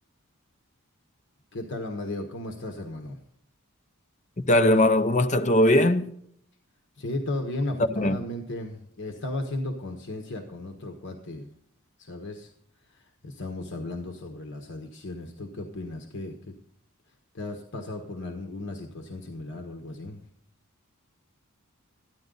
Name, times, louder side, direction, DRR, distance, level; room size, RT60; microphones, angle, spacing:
voice 1, 1.5-3.2 7.0-11.6 12.0-12.5 12.9-16.5 17.3-20.2, left 2 dB, 55° left, 1.3 m, -35 dB
voice 2, 4.5-6.1 8.0-8.2, left 1 dB, 35° left, 0.7 m, -20 dB
13.5 x 11.0 x 3.9 m
head